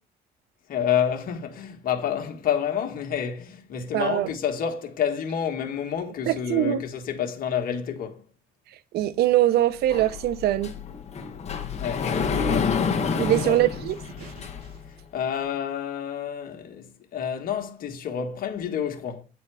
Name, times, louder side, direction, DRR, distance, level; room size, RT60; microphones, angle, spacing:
voice 1, 0.7-8.2 11.8-13.6 15.1-19.2, left 8 dB, 60° left, 1.6 m, -29 dB
voice 2, 3.9-4.3 6.3-6.8 8.9-10.7 13.2-14.3, right 13 dB, 70° right, 0.6 m, -23 dB
Sliding door, 9.9-14.9, left 5 dB, 40° left, 1.3 m, -28 dB
8.6 x 4.3 x 4.8 m
cardioid pair, 110°, 17 cm